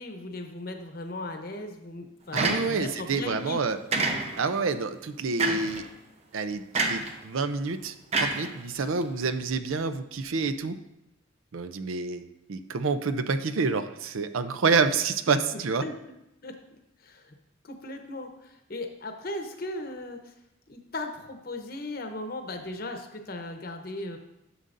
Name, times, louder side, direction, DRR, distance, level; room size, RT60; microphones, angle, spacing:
voice 1, 0.0-3.6 15.5-15.9 16.4-17.4 17.6-20.3 20.7-24.2, left 2 dB, 50° left, 5 dB, 0.9 m, -37 dB
voice 2, 2.3-3.8 4.4-5.8 6.3-6.6 6.9-10.7 11.5-15.8, right 4 dB, 85° right, 10 dB, 0.5 m, -28 dB
sound 1, 2.4-3.0 3.9-4.6 5.4-5.8 6.7-7.2 8.1-9.0, right 3 dB, 30° right, 0.7 m, -27 dB
11.0 x 6.7 x 2.6 m, 0.88 s
head